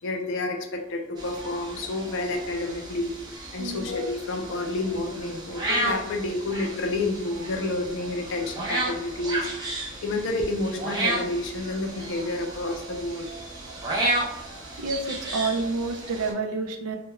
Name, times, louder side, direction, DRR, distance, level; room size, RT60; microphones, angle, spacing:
voice 1, 0.0-3.1 3.5-13.3, left 2 dB, 55° left, 3 dB, 0.4 m, -30 dB
sound 1, 1.2-16.3, right 1 dB, 20° right, 0.4 m, -33 dB
voice 2, 14.8-17.0, right 3 dB, 85° right, 4 dB, 0.4 m, -29 dB
2.2 x 2.1 x 2.9 m, 0.85 s
head